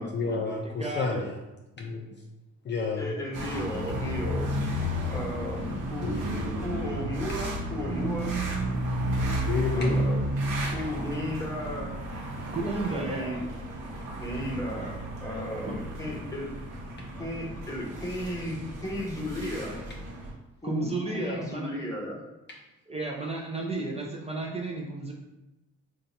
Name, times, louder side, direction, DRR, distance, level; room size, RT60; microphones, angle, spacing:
voice 1, 0.0-1.3 1.8-2.1 2.7-3.2 6.0-6.5 9.5-10.0, left 4 dB, 40° left, 0 dB, 0.4 m, -30 dB
voice 2, 0.8-1.3 12.5-13.4 20.6-21.9 22.9-25.1, right 3 dB, 20° right, -2 dB, 0.5 m, -33 dB
voice 3, 3.0-4.6 5.1-8.3 9.7-10.3 10.7-11.9 12.9-13.4 14.2-15.0 15.2-16.5 17.2-19.8 20.6-22.2, left 1 dB, 10° left, -2 dB, 0.9 m, -34 dB
XY City Night sidewalk building russian speech, 3.3-20.3, right 1 dB, 80° right, 0.9 m, -32 dB
2.7 x 2.3 x 3.9 m, 1.0 s
cardioid pair, 90°, 30 cm